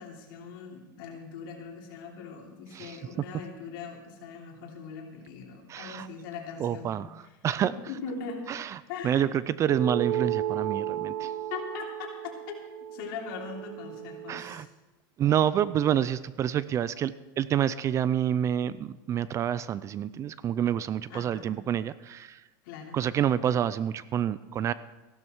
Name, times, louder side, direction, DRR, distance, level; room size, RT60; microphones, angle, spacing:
voice 1, 0.0-6.9 7.6-8.5 8.9-9.3 11.5-14.7 21.1-21.6 22.6-23.0, left 5 dB, 70° left, 0 dB, 3.2 m, -41 dB
voice 2, 2.7-3.3 5.7-6.1 6.6-7.7 8.5-8.8 9.0-11.3 14.3-14.7 15.2-22.4 22.9-24.7, right 10 dB, 25° right, 17 dB, 0.4 m, -28 dB
sound 1, 9.6-14.4, right 11 dB, 55° right, 1.7 m, -33 dB
15.5 x 12.0 x 4.5 m, 1.1 s
supercardioid pair, 145°, 12 cm